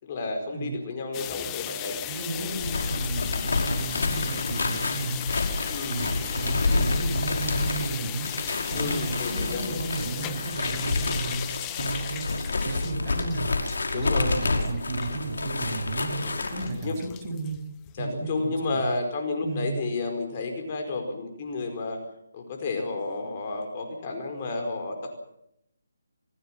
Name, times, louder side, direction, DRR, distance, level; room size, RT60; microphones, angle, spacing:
voice 1, 0.0-2.0 2.3-2.5 5.7-6.1 8.7-9.8 13.9-14.4 16.1-16.4 16.8-17.0 18.0-22.0 22.3-25.2, left 3 dB, 35° left, 4 dB, 4.9 m, -31 dB
sound 1, 1.1-18.0, left 14 dB, 15° left, 0.8 m, -37 dB
voice 2, 2.1-5.2 5.9-8.3 8.7-12.3 12.7-13.5 13.9-16.2 16.5-17.6 18.0-18.9 19.4-19.8, right 3 dB, 25° right, 0 dB, 7.5 m, -33 dB
sound 2, 2.5-16.7, left 3 dB, 75° left, 5.4 m, -29 dB
27.0 x 16.5 x 7.5 m, 0.78 s
hypercardioid pair, 160°, 0 cm